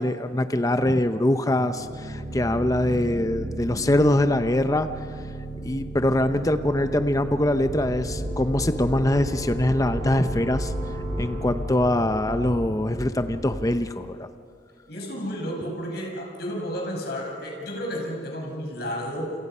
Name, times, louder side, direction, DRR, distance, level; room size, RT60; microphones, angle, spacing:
voice 1, 0.0-4.9 5.6-10.7 11.2-14.3, left 1 dB, 20° left, 9 dB, 0.7 m, -23 dB
sound 1, 1.6-13.1, right 1 dB, 50° right, 6.0 m, -35 dB
sound 2, 7.6-13.7, equal, 75° right, 3.7 m, -34 dB
voice 2, 14.9-19.3, equal, 60° left, 0 dB, 5.5 m, -32 dB
28.5 x 27.5 x 5.6 m, 2.4 s
head